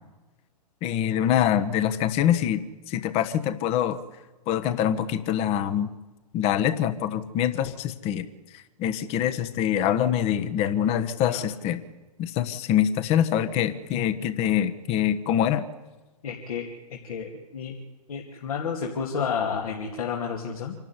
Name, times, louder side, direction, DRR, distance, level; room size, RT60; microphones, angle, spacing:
voice 1, 0.8-4.0 4.5-5.9 6.3-8.3 8.8-11.8 12.2-15.7, left 10 dB, 30° left, 12 dB, 1.4 m, -24 dB
voice 2, 16.2-17.8 18.1-20.8, left 6 dB, 60° left, 1 dB, 2.6 m, -31 dB
26.5 x 12.0 x 9.8 m, 1.2 s
figure-of-eight pair, 115°, 21 cm